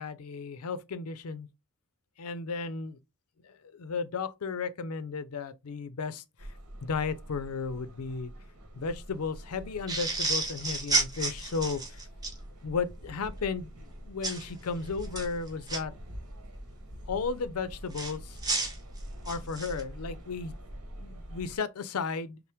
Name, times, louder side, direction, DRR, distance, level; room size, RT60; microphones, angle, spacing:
voice 1, 0.0-1.5 2.2-3.0 3.4-6.2 6.8-8.3 8.8-12.0 12.6-13.7 14.1-15.9 17.1-18.4 19.2-20.5 21.0-22.4, left 5 dB, 75° left, 0.5 m, -34 dB
sound 1, 6.4-21.6, equal, 75° right, 1.3 m, -45 dB
sound 2, 9.9-12.4 14.2-14.4 15.0-15.8 17.9-19.8, right 3 dB, 20° right, 1.1 m, -31 dB
5.5 x 2.1 x 3.4 m
head